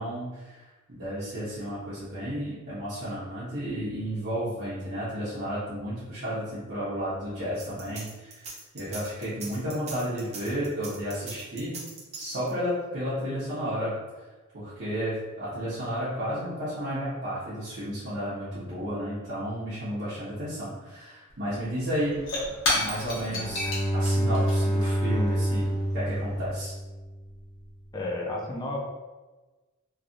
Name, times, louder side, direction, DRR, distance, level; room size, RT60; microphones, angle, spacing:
voice 1, 0.0-11.8 12.1-13.9 14.5-22.2 22.7-26.7, equal, 60° right, -13 dB, 1.0 m, -32 dB
sound 1, 7.6-12.7, right 3 dB, 35° right, 0.6 m, -41 dB
Shatter / Crushing, 21.3-21.4 21.6-26.5, left 2 dB, 65° left, 1.1 m, -33 dB
Bowed string instrument, 23.2-27.2, equal, 5° right, 1.0 m, -27 dB
voice 2, 27.9-28.8, left 2 dB, 20° left, -1 dB, 0.5 m, -31 dB
3.2 x 2.6 x 2.5 m, 1.2 s
head